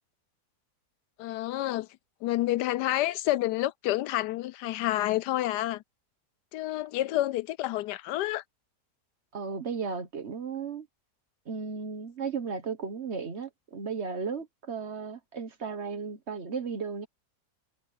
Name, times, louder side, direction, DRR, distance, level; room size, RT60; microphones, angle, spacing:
voice 1, 1.2-1.9 2.2-5.8 6.5-8.4, left 15 dB, 80° left, 1.2 m, -29 dB
voice 2, 9.3-10.9 11.5-17.1, right 5 dB, 45° right, 1.4 m, -35 dB
omnidirectional pair, 1.8 m